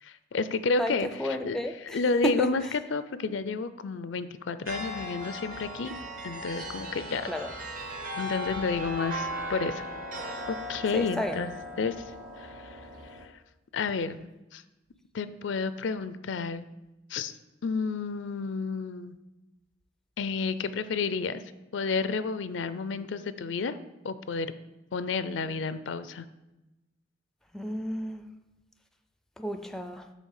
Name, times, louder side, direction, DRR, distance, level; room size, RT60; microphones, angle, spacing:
voice 1, 0.0-1.6 1.9-2.6 2.9-5.9 6.2-7.3 8.2-9.9 10.5-12.1 12.4-12.8 13.1-13.3 13.7-14.2 14.5-14.6 15.1-16.7 17.1-17.4 17.6-19.2 20.2-21.4 21.7-23.8 24.0-24.5 24.9-26.3, left 4 dB, 80° left, 13 dB, 0.5 m, -31 dB
voice 2, 0.8-2.0 2.2-2.7 7.3-7.5 10.9-11.5 27.5-28.3 29.4-30.1, equal, 5° left, 7 dB, 0.4 m, -32 dB
sound 1, 4.7-13.3, equal, 45° right, 1.0 m, -37 dB
8.3 x 3.2 x 6.5 m, 0.99 s
head